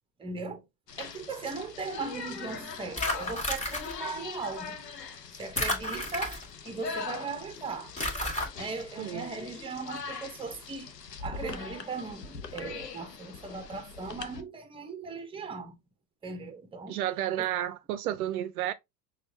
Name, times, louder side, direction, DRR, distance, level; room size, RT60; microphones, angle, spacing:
voice 1, 0.2-0.7 1.0-4.8 5.4-7.9 8.6-10.9 11.2-15.8 16.2-17.0 17.4-17.5, right 4 dB, 10° right, 0.8 m, -38 dB
sound 1, 0.9-14.4, left 5 dB, 85° left, 0.7 m, -42 dB
sound 2, 3.0-3.9 5.6-6.7 8.0-8.5, left 1 dB, 15° left, 1.5 m, -31 dB
voice 2, 9.0-9.3 16.9-18.7, right 12 dB, 65° right, 0.5 m, -31 dB
6.1 x 2.4 x 2.6 m
figure-of-eight pair, 75°, 48 cm